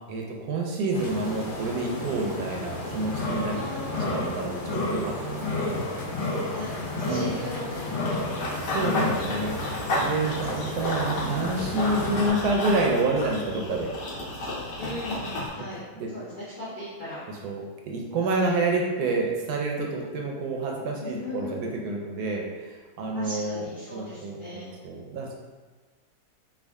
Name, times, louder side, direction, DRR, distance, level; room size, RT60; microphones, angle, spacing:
voice 1, 0.1-3.6 4.1-5.4 7.1-7.4 8.7-9.6 9.9-13.9 15.9-16.1 17.4-23.6 23.9-25.3, right 2 dB, 75° right, 0 dB, 1.0 m, -28 dB
sound 1, 0.9-12.3, left 2 dB, 30° left, 0.8 m, -31 dB
voice 2, 3.5-4.3 6.5-7.9 8.2-9.2 10.2-11.5 14.8-15.8 16.1-17.2 18.3-18.6 21.0-21.6 23.1-24.7, left 2 dB, 55° left, -10 dB, 0.5 m, -39 dB
Run / Bird vocalization bird call bird song, 8.1-15.5, left 1 dB, 80° left, 1.4 m, -32 dB
3.6 x 2.3 x 3.4 m, 1.4 s
omnidirectional pair, 1.9 m